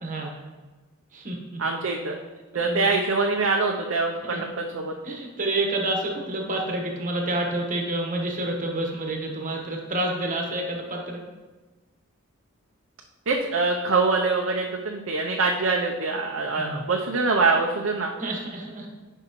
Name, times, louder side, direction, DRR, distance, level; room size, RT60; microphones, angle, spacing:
voice 1, 0.0-0.3 1.1-1.6 2.5-2.9 4.2-4.4 5.0-11.2 16.6-16.8 18.2-18.9, right 1 dB, 40° right, 1 dB, 1.2 m, -29 dB
voice 2, 1.6-2.2 2.5-4.9 13.3-18.1, right 3 dB, 65° right, 0 dB, 0.6 m, -24 dB
9.8 x 5.4 x 3.0 m, 1.3 s
head